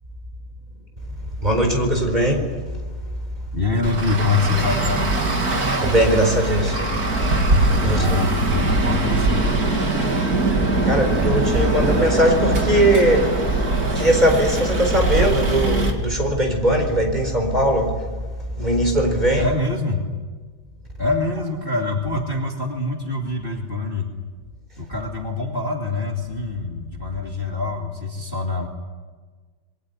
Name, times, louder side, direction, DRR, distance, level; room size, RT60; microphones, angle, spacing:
voice 1, 1.4-2.5 5.8-6.8 7.8-8.1 10.8-13.6 13.9-18.0 18.6-19.5, right 1 dB, 20° right, 3 dB, 4.5 m, -19 dB
voice 2, 3.5-5.1 7.8-9.5 19.4-20.0 21.0-24.1 24.8-28.7, left 3 dB, 25° left, 0 dB, 2.6 m, -25 dB
Traffic noise roadway noise, 3.8-15.9, right 2 dB, 45° right, 3.5 m, -22 dB
27.0 x 22.5 x 9.7 m, 1.4 s
omnidirectional pair, 2.2 m